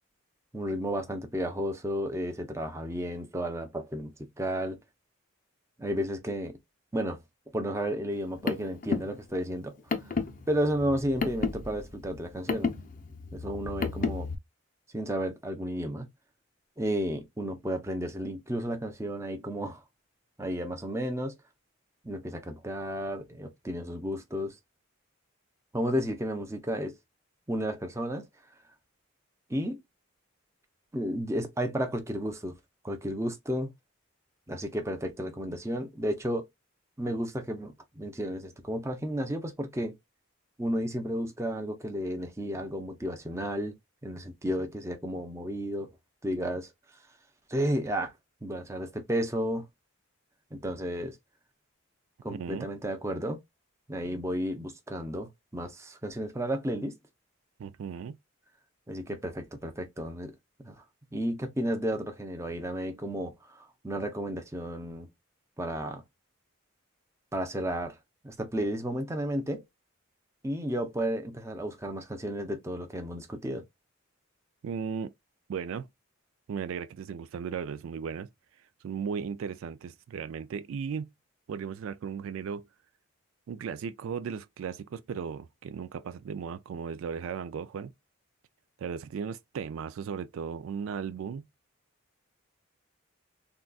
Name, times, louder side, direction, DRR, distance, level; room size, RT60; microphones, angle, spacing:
voice 1, 0.5-4.8 5.8-6.6 6.9-7.2 7.5-9.7 10.5-12.7 13.3-14.3 14.9-16.1 16.8-19.8 20.4-21.3 22.0-24.5 25.7-26.9 27.5-28.3 29.5-29.8 30.9-32.5 32.8-33.7 34.5-36.4 37.0-39.9 40.6-43.7 44.0-45.9 46.2-46.7 47.5-48.1 48.4-49.7 50.5-51.2 52.2-53.4 53.9-56.9 58.9-60.3 60.6-60.8 61.1-65.1 65.6-66.0 67.3-67.9 68.2-69.6 70.4-73.6, equal, 15° right, 0.5 m, -32 dB
Car, 8.1-14.4, left 4 dB, 40° left, 0.5 m, -33 dB
voice 2, 52.3-52.7 57.6-58.2 74.6-75.1 75.5-75.9 76.5-78.3 78.8-81.1 81.5-82.7 83.5-87.9 88.8-91.4, right 6 dB, 70° right, 0.3 m, -36 dB
3.8 x 2.3 x 2.3 m
head